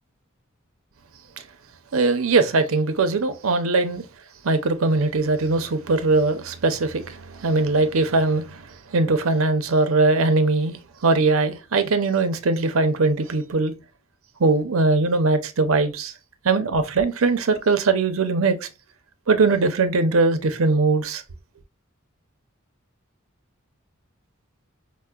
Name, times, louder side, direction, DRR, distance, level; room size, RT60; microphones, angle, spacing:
voice 1, 1.9-4.0 4.4-8.6 8.9-13.7 14.4-16.1 16.4-18.7 19.3-21.2, right 3 dB, 85° right, 0.7 m, -21 dB
5.4 x 2.1 x 2.3 m
head